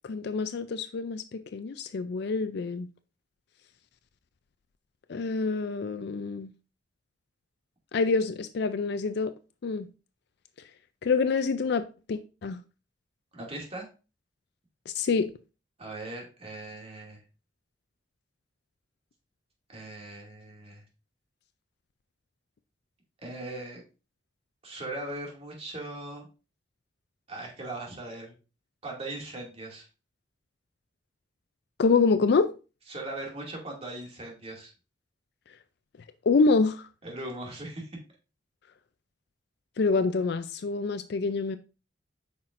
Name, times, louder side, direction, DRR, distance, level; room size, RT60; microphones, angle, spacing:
voice 1, 0.0-2.9 5.1-6.5 7.9-9.3 9.6-9.9 11.0-11.8 12.1-12.6 14.9-15.3 31.8-32.5 36.3-36.9 39.8-41.6, left 4 dB, 65° left, 0.4 m, -26 dB
voice 2, 13.3-13.9 15.8-17.2 19.7-20.8 23.2-23.8 24.6-26.3 27.3-28.4 28.8-29.9 32.9-34.7 37.0-38.0, right 2 dB, 35° right, 2.3 m, -39 dB
8.5 x 5.8 x 2.5 m
head